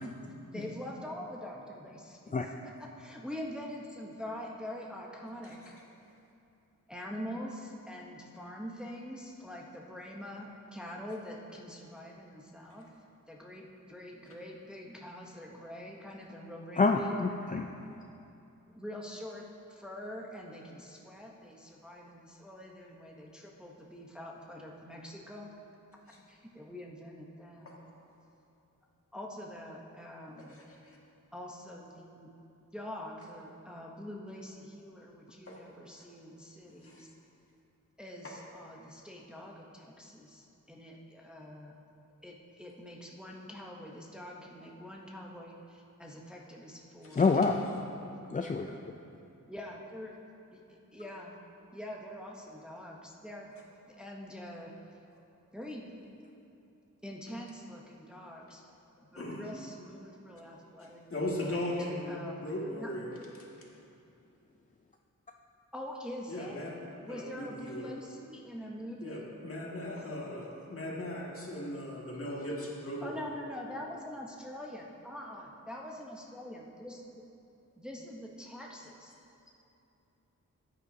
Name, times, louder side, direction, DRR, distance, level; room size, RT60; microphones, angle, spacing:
voice 1, 0.5-2.3 2.6-5.8 6.9-12.9 13.3-17.2 18.7-25.5 26.3-27.7 29.1-30.6 31.3-32.3 32.7-37.1 38.0-41.7 42.2-47.3 49.5-50.1 50.5-50.6 50.9-51.3 51.7-53.5 53.8-54.7 55.5-55.9 57.0-58.6 59.1-61.0 61.5-61.8 62.1-62.5 62.8-62.9 65.7-66.6 67.0-69.3 73.0-77.0 77.8-79.1, left 1 dB, 5° right, -2 dB, 0.8 m, -44 dB
voice 2, 16.8-17.7 47.2-47.6 48.3-48.7, left 4 dB, 25° left, 3 dB, 0.3 m, -26 dB
voice 3, 30.5-31.0 35.5-35.6 36.8-37.0 47.0-47.3 59.2-59.4 60.8-63.1 66.3-66.7 67.1-67.9 69.0-73.2, left 1 dB, 45° left, -3 dB, 1.8 m, -38 dB
14.0 x 9.2 x 2.7 m, 2.8 s
wide cardioid pair, 120°, 31 cm